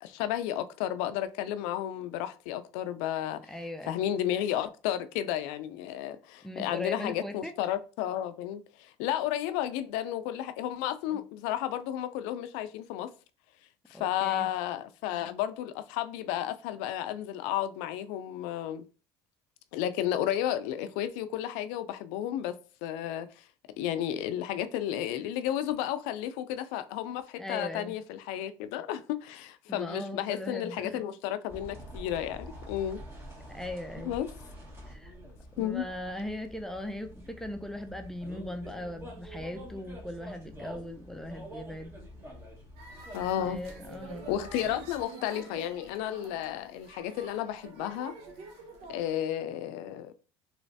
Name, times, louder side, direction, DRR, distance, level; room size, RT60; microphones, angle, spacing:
voice 1, 0.0-3.5 3.8-13.1 13.9-18.9 19.7-23.5 23.8-33.0 34.0-34.3 35.6-35.9 43.1-43.6 44.3-48.2 48.9-50.1, left 11 dB, 85° left, 0.4 m, -32 dB
voice 2, 3.5-4.0 6.4-7.5 11.1-11.2 13.9-14.5 27.4-27.9 29.7-31.0 33.5-34.2 34.9-35.1 35.5-41.9 43.5-44.3, left 1 dB, 5° left, 0.5 m, -39 dB
sound 1, 31.5-45.0, equal, 25° right, 1.5 m, -47 dB
sound 2, 42.8-49.1, right 3 dB, 75° right, 0.9 m, -48 dB
3.1 x 3.1 x 2.7 m
cardioid pair, 110°, 10 cm